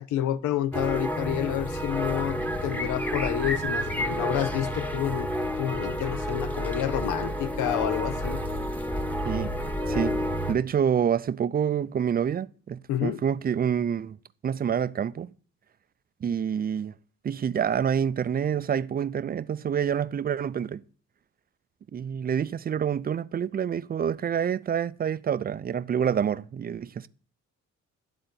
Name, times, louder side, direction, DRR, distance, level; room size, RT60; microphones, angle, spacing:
voice 1, 0.0-5.3 5.6-8.4 12.9-13.2, left 11 dB, 85° left, 0.7 m, -29 dB
sound 1, 0.7-10.6, equal, 5° left, 1.0 m, -30 dB
voice 2, 9.9-10.2 10.5-14.2 14.4-15.3 16.2-16.9 17.2-20.8 21.9-27.1, right 8 dB, 30° right, 0.4 m, -27 dB
11.0 x 3.9 x 7.0 m
cardioid pair, 90°, 30 cm